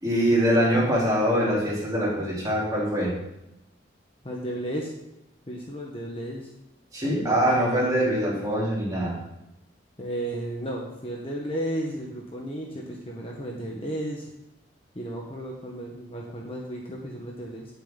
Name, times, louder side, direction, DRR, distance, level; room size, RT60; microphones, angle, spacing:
voice 1, 0.0-3.1 6.9-9.2, equal, 20° right, -6 dB, 3.9 m, -23 dB
voice 2, 4.2-4.9 5.5-6.5 7.0-7.4 10.0-14.3 14.9-17.7, right 1 dB, 30° left, -1 dB, 1.4 m, -33 dB
17.5 x 7.1 x 4.1 m, 0.89 s
head